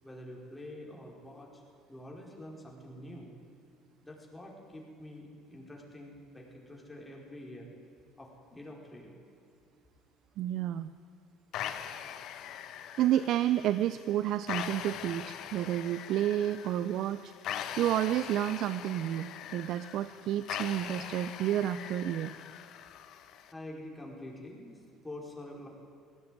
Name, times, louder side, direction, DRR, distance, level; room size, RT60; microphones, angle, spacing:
voice 1, 0.0-1.6 1.9-3.3 4.0-7.8 8.2-9.1 23.5-25.7, left 1 dB, 10° left, -1 dB, 4.9 m, -46 dB
voice 2, 10.4-10.9 13.0-22.3, right 12 dB, 60° right, 13 dB, 0.6 m, -30 dB
sound 1, 11.5-23.5, left 10 dB, 60° left, 1.3 m, -42 dB
18.5 x 16.0 x 9.3 m, 2.5 s
cardioid pair, 110°, 0 cm